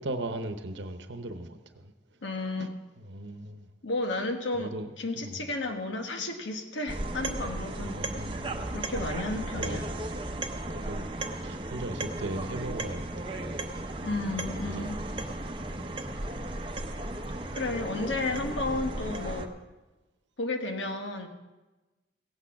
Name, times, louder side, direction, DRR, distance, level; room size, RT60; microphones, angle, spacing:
voice 1, 0.0-1.9 2.6-2.7 3.0-3.7 4.6-5.5 7.8-8.7 9.6-9.8 10.7-11.1 11.4-13.3 14.4-14.9 15.1-15.3 18.0-18.1 18.7-18.8, right 2 dB, 75° right, 8 dB, 0.9 m, -38 dB
voice 2, 2.2-2.7 3.8-8.0 8.7-9.9 14.0-15.0 17.5-19.5 20.4-21.3, left 2 dB, 90° left, 4 dB, 1.3 m, -32 dB
sound 1, 6.9-19.5, right 2 dB, 25° right, 0.8 m, -35 dB
16.0 x 8.6 x 5.8 m, 1.2 s
head